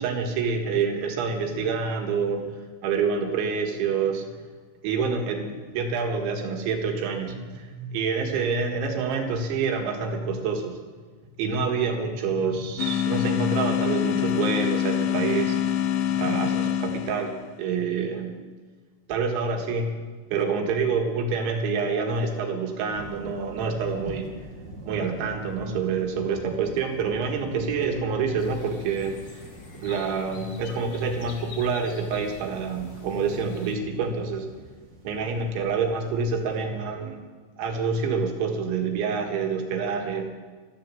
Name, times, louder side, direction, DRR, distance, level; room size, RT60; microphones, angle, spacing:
voice 1, 0.0-2.5 2.8-4.3 4.8-10.8 11.4-15.6 16.1-18.3 19.1-20.0 20.3-24.3 24.9-29.5 29.7-34.5 35.0-37.2 37.6-40.3, right 5 dB, 85° right, 3 dB, 4.0 m, -27 dB
sound 1, 12.8-17.5, left 10 dB, 75° left, 2.3 m, -25 dB
sound 2, 22.9-36.6, right 1 dB, 55° right, 1.2 m, -44 dB
sound 3, 28.4-33.7, left 4 dB, 50° left, 1.2 m, -46 dB
14.0 x 11.5 x 7.6 m, 1.5 s
omnidirectional pair, 5.3 m